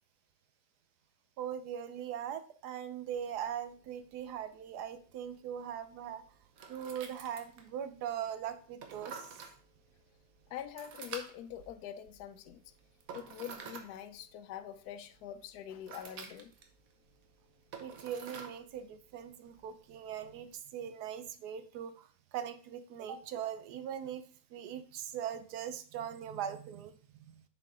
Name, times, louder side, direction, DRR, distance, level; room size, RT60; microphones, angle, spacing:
voice 1, 1.4-6.2 6.7-9.4 17.8-24.2 24.5-26.9 27.2-27.4, right 9 dB, 90° right, 1.3 m, -40 dB
sound 1, 3.1-20.6, right 5 dB, 65° right, 1.2 m, -52 dB
voice 2, 10.5-12.7 13.1-16.5, left 10 dB, 80° left, 1.1 m, -44 dB
7.0 x 4.6 x 3.6 m
omnidirectional pair, 1.7 m